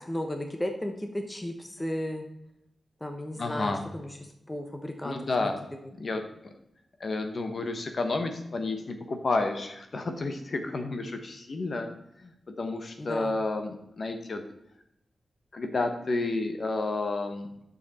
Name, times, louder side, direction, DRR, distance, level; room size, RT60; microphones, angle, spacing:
voice 1, 0.0-2.2 3.0-4.1 4.5-5.1 5.4-5.5 13.0-13.3, left 1 dB, 15° left, 4 dB, 0.9 m, -34 dB
voice 2, 3.4-3.8 5.0-5.6 6.0-6.5 7.0-11.9 12.2-12.3 12.6-14.4 15.5-17.5, left 3 dB, 50° left, 6 dB, 1.1 m, -31 dB
10.5 x 6.8 x 4.2 m, 0.82 s
wide cardioid pair, 135°, 0 cm